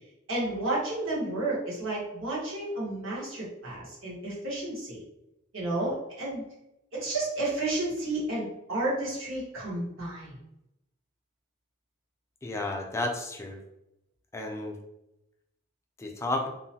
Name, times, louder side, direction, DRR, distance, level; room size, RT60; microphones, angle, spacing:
voice 1, 0.3-5.0 5.5-6.4 6.9-10.3, right 2 dB, 80° right, -6 dB, 1.2 m, -31 dB
voice 2, 12.4-13.6 14.3-14.7 16.0-16.5, left 2 dB, 15° left, 2 dB, 0.4 m, -32 dB
2.8 x 2.1 x 2.8 m, 0.87 s
head